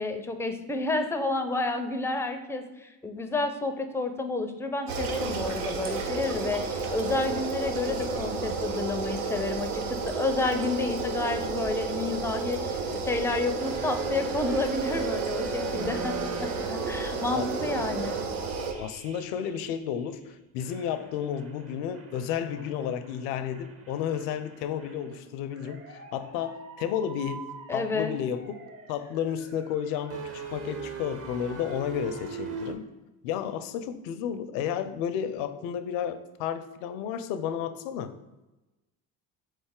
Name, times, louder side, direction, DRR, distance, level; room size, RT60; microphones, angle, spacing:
voice 1, 0.0-18.2 27.7-28.1, left 3 dB, 5° left, 7 dB, 0.4 m, -30 dB
sound 1, 4.9-18.7, right 4 dB, 85° right, 0.7 m, -32 dB
sound 2, 13.6-20.1 20.6-32.7, right 5 dB, 30° right, 0.7 m, -41 dB
voice 2, 17.1-17.5 18.7-28.6 28.9-32.9 33.2-38.1, left 9 dB, 75° left, 11 dB, 0.5 m, -32 dB
4.0 x 3.2 x 3.6 m, 1.1 s
hypercardioid pair, 65°, 44 cm